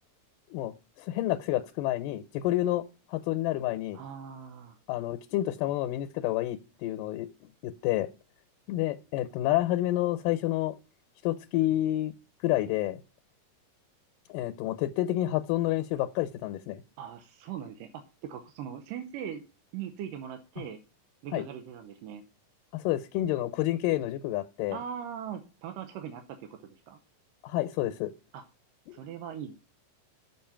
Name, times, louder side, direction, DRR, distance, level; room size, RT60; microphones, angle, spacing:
voice 1, 1.0-2.8 3.1-4.0 4.9-8.1 8.7-10.8 11.2-12.1 12.4-13.0 14.3-16.8 21.3-21.5 22.7-24.8 27.4-28.1 28.9-29.0, left 15 dB, 85° left, 2.2 m, -29 dB
voice 2, 3.9-4.8 17.0-19.4 19.7-20.8 21.2-22.2 24.7-27.0 28.3-28.4 28.9-29.5, right 8 dB, 90° right, 2.5 m, -40 dB
7.0 x 6.1 x 5.6 m
omnidirectional pair, 3.9 m